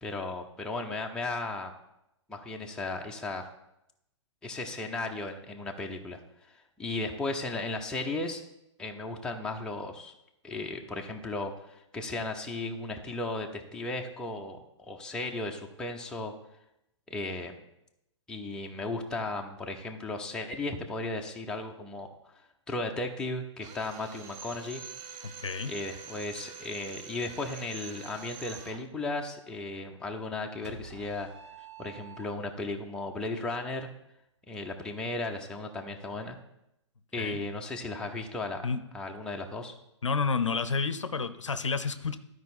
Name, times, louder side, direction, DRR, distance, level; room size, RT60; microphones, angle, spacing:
voice 1, 0.0-1.7 2.3-3.5 4.4-6.2 6.5-8.4 8.8-10.1 10.4-16.3 17.1-17.6 18.3-22.3 22.7-24.8 25.7-31.3 31.8-33.9 34.5-36.4 37.1-38.6 38.9-39.7, left 2 dB, 5° left, 1 dB, 0.8 m, -35 dB
Drill, 23.6-28.9, right 6 dB, 25° right, 0.6 m, -45 dB
voice 2, 25.2-25.7 37.2-37.4 38.6-38.8 40.0-42.2, left 5 dB, 80° left, 12 dB, 0.6 m, -30 dB
sound 1, 30.6-32.7, right 5 dB, 65° right, 1.4 m, -48 dB
12.5 x 4.7 x 4.2 m, 0.85 s
figure-of-eight pair, 115°, 16 cm